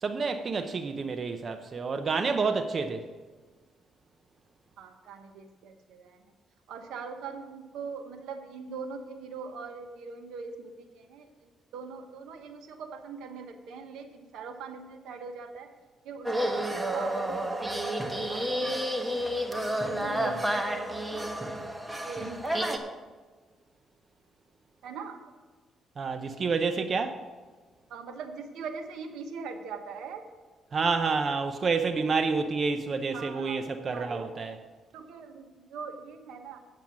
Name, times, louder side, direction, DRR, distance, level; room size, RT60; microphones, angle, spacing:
voice 1, 0.0-3.1 20.2-20.4 26.0-27.2 30.7-34.5, right 4 dB, 45° right, 0.6 m, -29 dB
voice 2, 4.8-6.2 6.7-15.7 16.0-18.8 19.1-19.3 19.9-21.3 22.0-22.4 24.8-25.2 27.9-30.2 33.1-34.3 34.9-36.6, right 5 dB, 85° right, 1.1 m, -42 dB
sound 1, 16.3-22.8, right 1 dB, 10° right, 1.1 m, -30 dB
8.7 x 7.6 x 6.1 m
cardioid pair, 90°, 0 cm